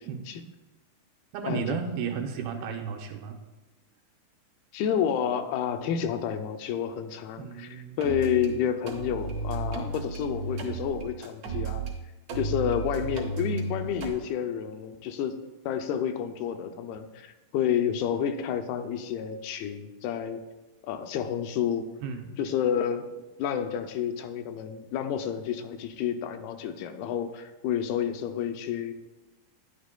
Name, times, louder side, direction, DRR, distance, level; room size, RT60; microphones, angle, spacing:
voice 1, 1.3-3.4 7.4-8.0 22.0-22.4, right 6 dB, 80° right, 4 dB, 2.6 m, -33 dB
voice 2, 4.7-11.9 12.4-20.4 20.8-21.9 22.4-23.1 23.4-28.9, left 8 dB, 85° left, 7 dB, 2.4 m, -30 dB
sound 1, 8.0-8.5 8.9-11.9 12.3-14.1, right 3 dB, 65° right, 1.8 m, -33 dB
10.0 x 9.7 x 2.2 m, 1.1 s
omnidirectional pair, 4.4 m